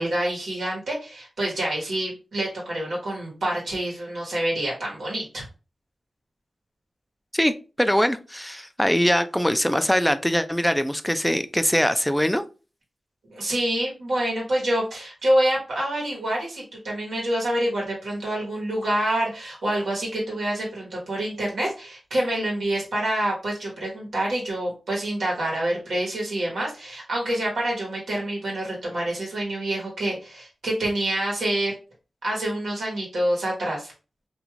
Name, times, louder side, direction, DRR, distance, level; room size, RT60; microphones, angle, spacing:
voice 1, 0.0-5.4 13.3-31.7 32.2-33.9, right 1 dB, 85° right, 1.1 m, -27 dB
voice 2, 7.8-12.4, equal, 5° left, 0.3 m, -22 dB
2.5 x 2.3 x 3.0 m
cardioid pair, 55°, 0 cm